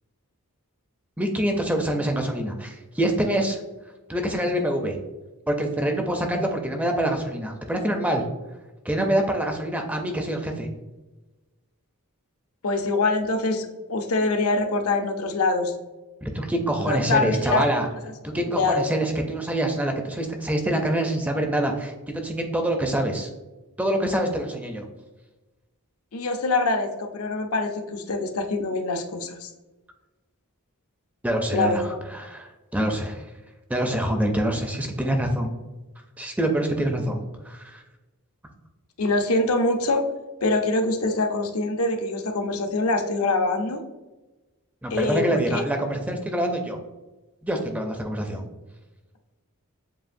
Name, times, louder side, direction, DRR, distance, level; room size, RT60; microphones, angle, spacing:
voice 1, 1.2-3.6 4.1-5.0 5.5-8.2 8.8-10.7 16.2-17.9 18.2-23.3 23.8-24.9 31.2-33.2 33.7-35.5 36.2-37.8 44.8-46.8 47.4-48.4, right 1 dB, 5° right, 3 dB, 0.4 m, -25 dB
voice 2, 12.6-15.7 16.8-17.6 18.3-18.9 26.1-29.5 31.5-32.0 39.0-40.0 40.4-43.8 44.9-45.6, left 3 dB, 75° left, 5 dB, 0.6 m, -24 dB
7.5 x 2.6 x 2.6 m, 1.1 s
head